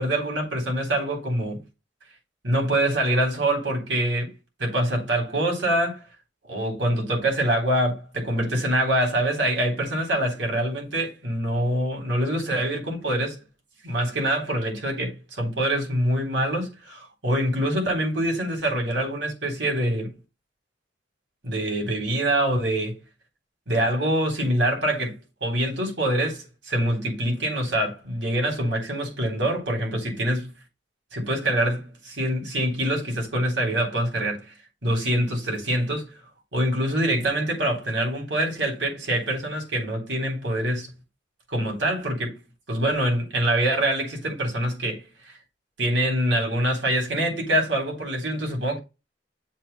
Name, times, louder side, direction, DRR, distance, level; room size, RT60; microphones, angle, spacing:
voice 1, 0.0-1.6 2.4-4.3 4.6-6.0 6.5-13.4 13.8-20.2 21.4-23.0 23.7-30.5 31.1-34.5 34.8-36.2 36.5-40.9 41.5-42.4 42.7-45.0 45.8-48.8, right 1 dB, 75° right, 3.7 m, -25 dB
7.5 x 3.6 x 5.5 m
head